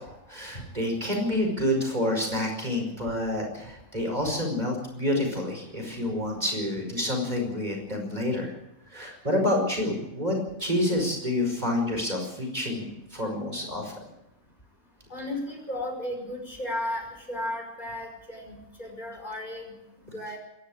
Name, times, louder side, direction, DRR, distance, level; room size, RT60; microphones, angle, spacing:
voice 1, 0.0-8.5 8.9-13.9, left 1 dB, 30° right, 1 dB, 5.5 m, -28 dB
voice 2, 15.1-19.7 20.0-20.4, left 1 dB, 30° left, 2 dB, 5.6 m, -34 dB
26.5 x 11.5 x 8.7 m, 0.85 s
omnidirectional pair, 1.5 m